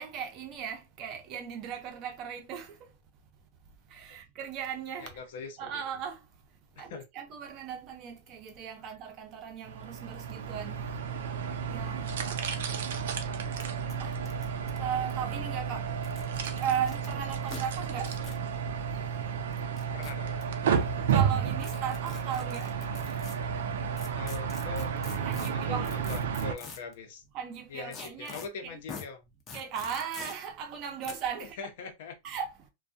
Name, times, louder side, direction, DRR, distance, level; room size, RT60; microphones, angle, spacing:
voice 1, 0.0-2.8 3.9-5.1 5.6-6.2 6.8-10.9 11.7-13.0 14.0-14.2 14.8-15.9 16.6-18.1 20.8-22.7 25.2-26.0 27.3-28.8 29.5-31.6 32.2-32.6, right 8 dB, 45° right, 0.7 m, -37 dB
voice 2, 5.0-5.8 6.9-7.0 12.3-12.8 19.9-20.6 24.1-24.9 25.5-27.2 27.7-29.2 31.6-32.1, left 4 dB, 70° left, 0.7 m, -42 dB
sound 1, 9.6-26.5, right 7 dB, 80° right, 0.5 m, -32 dB
sound 2, 12.8-12.9 13.1-13.2 13.6-13.7 13.9-15.3 15.9-17.1 17.5-17.6 18.1-18.4 19.5-20.4 21.6-23.4 24.0-26.9 27.9-28.5 28.9-29.1 29.5-30.3 31.1-31.2, left 5 dB, 30° left, 0.7 m, -44 dB
2.3 x 2.2 x 2.6 m
supercardioid pair, 130°, 0 cm